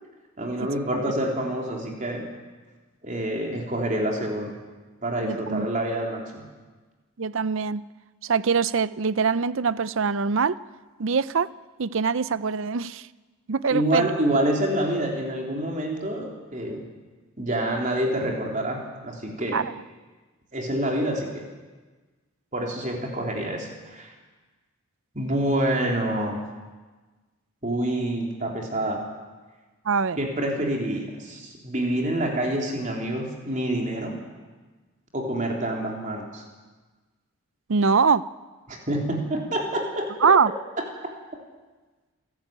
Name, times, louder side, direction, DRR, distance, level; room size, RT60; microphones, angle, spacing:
voice 1, 0.4-2.3 3.0-4.5 5.0-6.5 13.7-16.9 17.4-19.6 20.5-21.4 22.5-24.1 25.1-26.4 27.6-29.0 30.2-34.2 35.1-36.4 38.7-40.1, right 1 dB, 35° right, 0 dB, 3.8 m, -27 dB
voice 2, 5.2-5.7 7.2-7.8 8.2-10.6 11.0-11.5 11.8-13.1 13.5-14.1 19.5-19.7 29.9-30.2 37.7-38.2 40.2-40.5, right 5 dB, 65° right, 17 dB, 0.6 m, -23 dB
27.5 x 12.5 x 8.9 m, 1.3 s
head